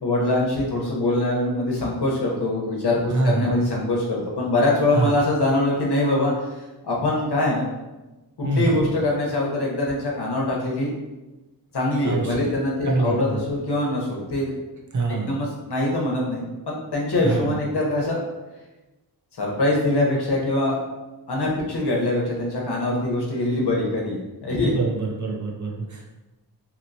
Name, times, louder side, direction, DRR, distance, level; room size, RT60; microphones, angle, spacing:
voice 1, 0.0-6.3 6.8-7.7 8.6-10.9 11.7-14.5 15.1-18.2 19.4-20.8 21.3-24.8, left 2 dB, 70° left, -2 dB, 0.9 m, -23 dB
voice 2, 3.1-3.5 4.9-5.1 8.4-8.9 12.0-12.4 12.8-13.5 14.9-15.4 17.2-17.5 24.6-26.1, right 3 dB, 45° right, 0 dB, 0.5 m, -25 dB
2.9 x 2.8 x 2.6 m, 1.1 s
wide cardioid pair, 85°, 41 cm